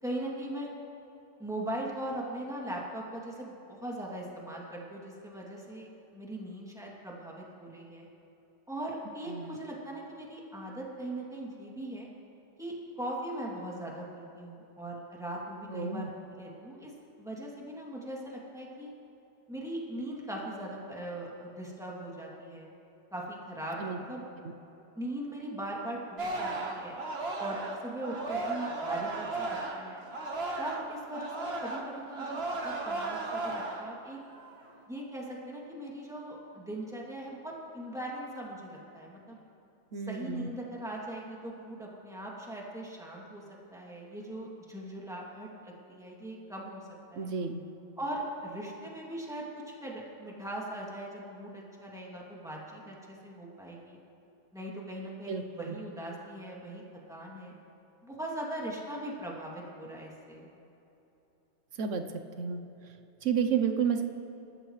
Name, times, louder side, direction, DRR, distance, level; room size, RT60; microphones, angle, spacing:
voice 1, 0.0-0.7 1.4-5.9 6.1-8.1 8.7-12.1 12.6-16.9 17.2-18.9 19.5-22.7 23.1-24.3 24.9-27.0 27.4-30.1 30.6-34.2 34.9-39.4 39.9-43.4 43.7-47.3 48.0-54.0 54.5-56.8 57.1-57.5 58.0-60.5, right 1 dB, 5° right, -4 dB, 2.7 m, -40 dB
voice 2, 15.7-16.1 23.8-24.0 39.9-40.5 47.1-47.6 55.3-55.7 61.8-62.6 63.2-64.0, right 7 dB, 90° right, 7 dB, 1.2 m, -31 dB
Singing, 26.2-30.9 31.1-33.9 34.3-34.7, right 2 dB, 55° right, 1.7 m, -35 dB
28.0 x 14.0 x 3.3 m, 3.0 s
omnidirectional pair, 1.2 m